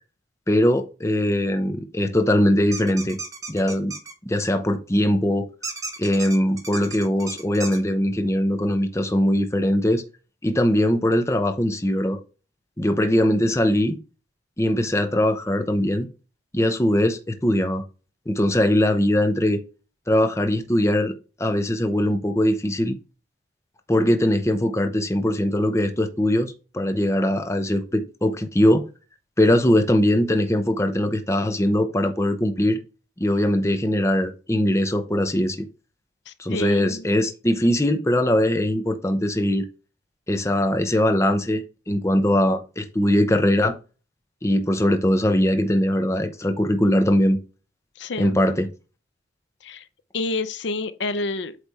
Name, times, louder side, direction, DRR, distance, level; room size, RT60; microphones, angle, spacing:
voice 1, 0.5-3.2 3.5-3.9 4.3-5.5 6.0-10.0 10.4-12.2 12.8-14.0 14.6-16.1 16.5-17.8 18.3-19.6 20.1-21.1 21.4-22.9 23.9-28.8 29.4-32.8 33.2-35.6 36.4-39.6 40.3-43.8 44.4-47.4 48.2-48.7, left 1 dB, 15° left, 0.7 m, -21 dB
sound 1, 2.7-4.1 5.6-7.8, right 3 dB, 15° right, 1.0 m, -34 dB
voice 2, 36.3-37.0 48.0-48.4 49.6-49.8 50.1-51.6, left 3 dB, 70° left, 0.6 m, -28 dB
8.2 x 3.3 x 4.2 m
head